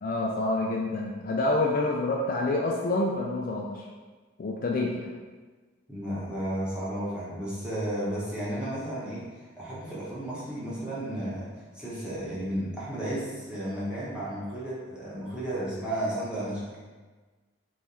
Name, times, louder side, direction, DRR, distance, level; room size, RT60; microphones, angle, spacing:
voice 1, 0.0-3.8 4.4-5.1, left 2 dB, 40° left, -1 dB, 0.3 m, -27 dB
voice 2, 5.9-11.5 11.7-16.6, right 1 dB, 5° right, -9 dB, 1.1 m, -33 dB
3.5 x 3.1 x 4.2 m, 1.3 s
head